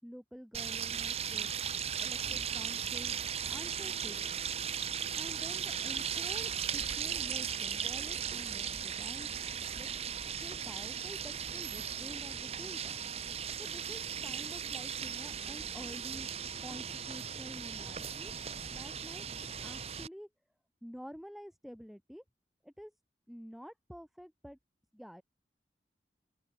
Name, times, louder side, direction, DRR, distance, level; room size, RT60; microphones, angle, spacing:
voice 1, 0.0-1.6 2.0-3.2 3.5-4.3 5.2-9.3 9.7-9.9 10.4-13.0 13.6-16.3 16.6-18.3 18.7-19.2 19.6-20.3 20.8-22.2 22.6-22.9 23.3-24.6 24.9-25.2, equal, ahead, 5.5 m, -49 dB
sound 1, 0.5-20.1, right 8 dB, 35° right, 1.2 m, -37 dB
open air
head